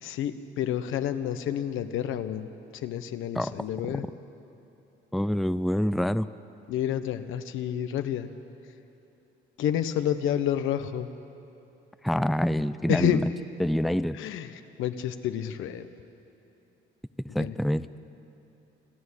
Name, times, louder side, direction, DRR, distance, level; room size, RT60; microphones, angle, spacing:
voice 1, 0.0-4.1 6.7-8.3 9.6-11.1 12.9-13.2 14.1-15.9 17.4-17.5, left 10 dB, 90° left, 9 dB, 1.0 m, -29 dB
voice 2, 5.1-6.3 12.0-13.2 13.6-14.2 17.3-17.9, equal, ahead, 14 dB, 0.5 m, -26 dB
28.5 x 11.0 x 9.9 m, 2.9 s
cardioid pair, 90°, 20 cm